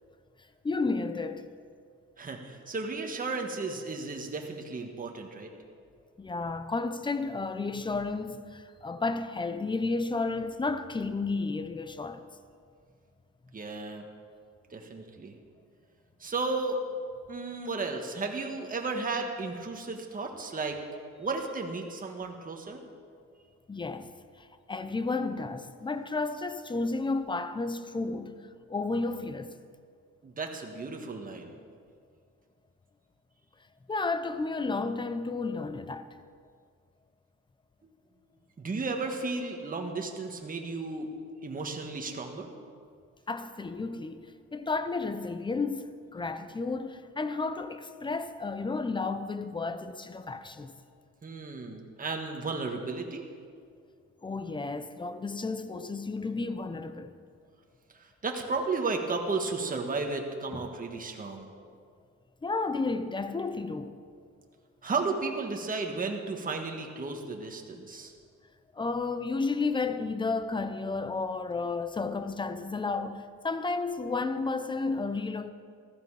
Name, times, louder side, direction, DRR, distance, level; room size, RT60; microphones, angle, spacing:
voice 1, 0.6-1.6 6.2-12.3 23.7-24.1 24.4-28.4 28.7-29.6 33.9-36.1 43.3-50.7 54.2-57.2 60.6-60.7 62.4-64.0 68.7-75.5, left 3 dB, 15° left, 0.6 m, -32 dB
voice 2, 2.2-5.5 13.5-14.0 14.7-15.3 16.2-16.8 17.3-20.8 21.2-22.8 30.2-31.6 37.8-37.9 38.6-41.1 41.4-42.5 51.2-53.3 57.9-61.5 64.8-68.1, right 3 dB, 30° right, 1.5 m, -34 dB
14.5 x 13.5 x 4.8 m
cardioid pair, 125°, 30 cm